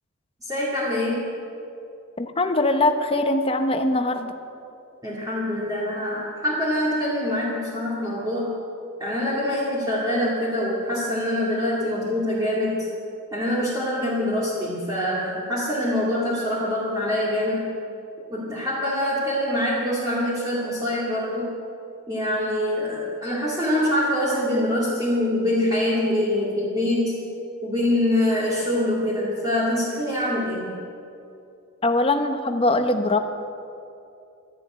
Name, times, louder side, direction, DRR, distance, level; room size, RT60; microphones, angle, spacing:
voice 1, 0.4-1.3 5.0-8.5 9.0-12.9 13.3-17.7 18.3-21.5 22.1-27.2 27.6-30.8, left 1 dB, 15° right, -6 dB, 2.2 m, -24 dB
voice 2, 2.2-4.3 31.8-33.2, left 2 dB, 25° left, 7 dB, 0.9 m, -22 dB
12.5 x 11.0 x 9.4 m, 2.6 s
head